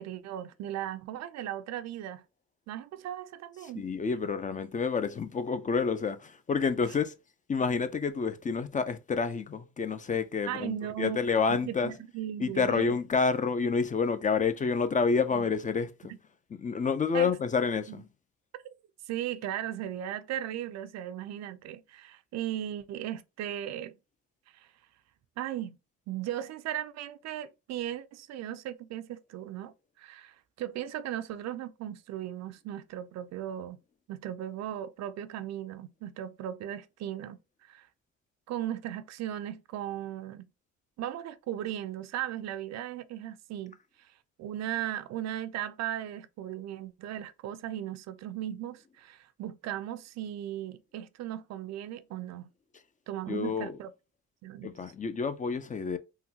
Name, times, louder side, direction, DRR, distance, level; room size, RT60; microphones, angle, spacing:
voice 1, 0.0-2.2 2.7-3.9 10.5-11.2 11.5-13.0 15.3-15.4 17.1-17.3 17.9-18.0 18.6-18.7 19.1-24.0 24.5-24.7 25.4-25.8 26.1-33.8 34.1-37.9 38.5-40.5 41.0-44.1 44.4-52.5 53.1-53.9 54.4-54.7, right 11 dB, 65° right, 0.4 m, -37 dB
voice 2, 3.8-7.1 7.5-11.9 12.4-15.9 16.6-18.0 53.3-53.8 54.6-56.0, left 5 dB, 25° left, 0.4 m, -29 dB
3.7 x 2.2 x 2.7 m
cardioid pair, 85°, 29 cm